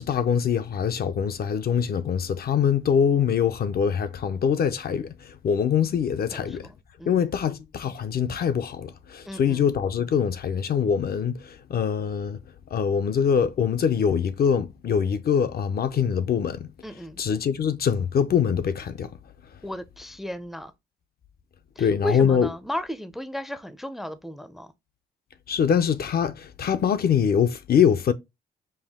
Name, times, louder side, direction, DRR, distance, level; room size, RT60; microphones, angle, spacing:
voice 1, 0.0-6.6 7.1-12.4 12.7-16.7 17.2-19.1 21.8-22.5 25.5-28.1, left 7 dB, 50° left, 0.6 m, -23 dB
voice 2, 6.3-7.3 9.3-9.7 16.8-17.2 19.6-20.7 21.8-24.7, equal, ahead, 0.5 m, -35 dB
5.5 x 2.2 x 3.5 m
cardioid pair, 90°, 20 cm